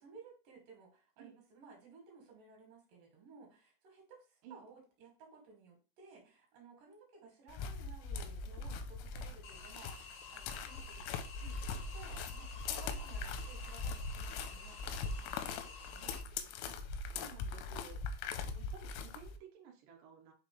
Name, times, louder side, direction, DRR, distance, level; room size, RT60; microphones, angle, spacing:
voice 1, 0.0-16.2, right 4 dB, 55° right, 0 dB, 3.1 m, -58 dB
sound 1, 7.5-19.4, left 4 dB, 85° left, 3.1 m, -41 dB
sound 2, 9.4-16.2, left 5 dB, 70° left, 2.6 m, -52 dB
voice 2, 17.1-18.0 18.4-20.3, right 8 dB, 85° right, 1 dB, 1.9 m, -55 dB
6.7 x 4.9 x 3.1 m, 0.35 s
omnidirectional pair, 5.7 m